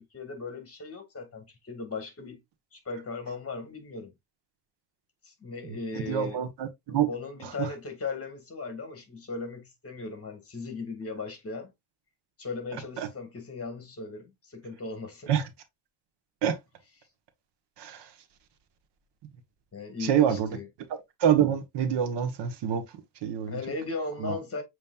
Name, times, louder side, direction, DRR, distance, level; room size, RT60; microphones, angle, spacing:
voice 1, 0.0-2.4 2.7-4.1 5.2-6.4 6.9-11.7 12.4-15.3 19.7-20.7 23.4-24.6, left 4 dB, 35° left, 1.8 m, -37 dB
voice 2, 6.0-7.1 7.6-7.7 13.0-13.1 15.3-15.4 16.4-16.6 17.8-18.0 20.0-20.5 21.2-22.8 23.2-23.6 24.2-24.4, right 9 dB, 75° right, 1.1 m, -26 dB
7.0 x 3.1 x 2.3 m
cardioid pair, 135°, 42 cm